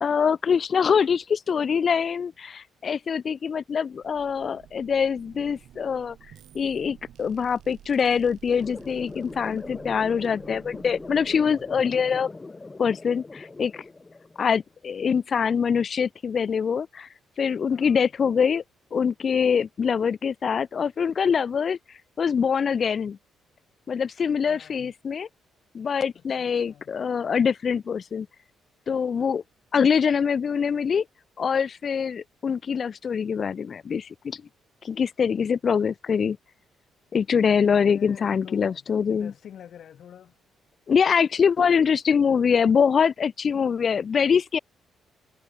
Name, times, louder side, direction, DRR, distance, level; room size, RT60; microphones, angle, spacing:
voice 1, 0.0-6.2 6.5-12.3 12.8-13.8 14.4-17.1 17.4-18.6 18.9-21.8 22.2-23.2 23.9-25.3 25.7-28.3 28.9-29.4 29.7-31.0 31.4-34.4 34.8-36.4 37.1-39.3 40.9-44.6, left 6 dB, 45° left, 0.5 m, -24 dB
sound 1, 3.9-12.3, right 11 dB, 70° right, 3.5 m, -52 dB
sound 2, 8.6-14.6, left 3 dB, 20° left, 0.9 m, -41 dB
voice 2, 24.5-24.9 26.3-26.9 37.7-38.8 39.1-40.3, left 9 dB, 65° left, 3.8 m, -46 dB
cardioid pair, 90°, 0 cm